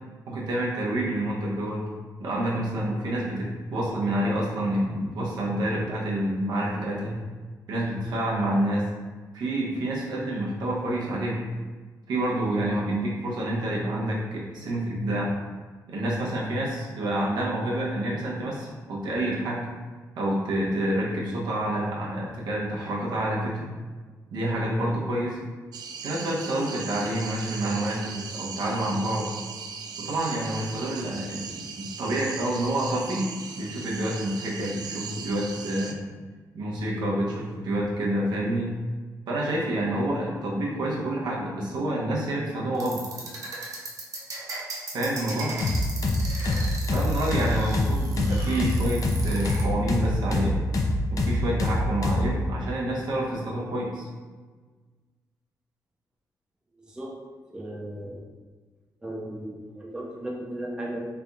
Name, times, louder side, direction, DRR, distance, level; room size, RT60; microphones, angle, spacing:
voice 1, 0.3-1.8 2.2-7.2 7.7-8.8 9.3-11.4 12.1-15.3 15.9-19.7 20.1-23.7 24.3-25.4 26.0-29.3 30.0-36.0 36.5-38.7 39.3-43.0 44.9-45.6 46.9-50.6 51.1-54.1, right 1 dB, 90° right, -4 dB, 0.9 m, -28 dB
sound 1, 25.7-35.9, right 6 dB, 75° right, 0.3 m, -39 dB
sound 2, 42.7-49.6, right 2 dB, 55° right, 0.9 m, -37 dB
sound 3, 45.6-52.3, left 2 dB, 55° left, 0.5 m, -25 dB
voice 2, 56.8-57.1 57.5-58.2 59.0-61.0, right 1 dB, 10° right, -3 dB, 0.5 m, -36 dB
3.4 x 2.3 x 3.9 m, 1.4 s
cardioid pair, 110°, 7 cm